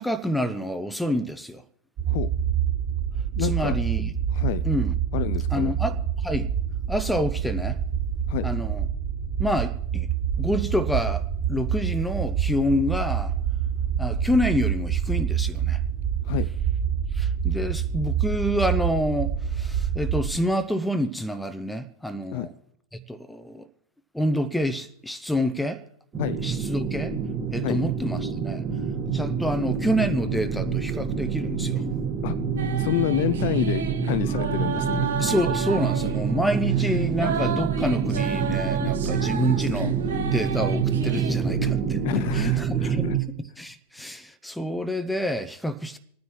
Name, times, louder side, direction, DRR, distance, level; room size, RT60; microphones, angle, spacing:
voice 1, 0.0-1.6 3.4-4.1 4.6-5.0 5.5-6.5 6.9-7.8 8.4-8.9 9.4-10.1 10.4-11.2 11.5-13.3 14.0-15.8 17.1-22.5 22.9-23.6 24.1-25.8 26.4-27.1 27.5-28.6 29.1-31.8 35.2-39.9 40.3-42.1 42.3-43.1 43.4-46.0, equal, 5° left, 0.8 m, -27 dB
sound 1, 2.0-20.3, right 8 dB, 40° right, 5.4 m, -27 dB
voice 2, 3.4-3.8 4.3-4.6 5.1-5.7 8.3-8.5 16.2-16.5 22.3-22.5 26.2-26.4 27.6-27.8 32.2-32.4 32.8-35.1 42.0-43.2, left 13 dB, 50° left, 0.5 m, -28 dB
sound 2, 26.1-43.2, right 6 dB, 25° right, 2.0 m, -27 dB
sound 3, 32.6-41.3, right 7 dB, 60° right, 1.0 m, -33 dB
28.0 x 9.4 x 3.1 m
figure-of-eight pair, 90°, 0 cm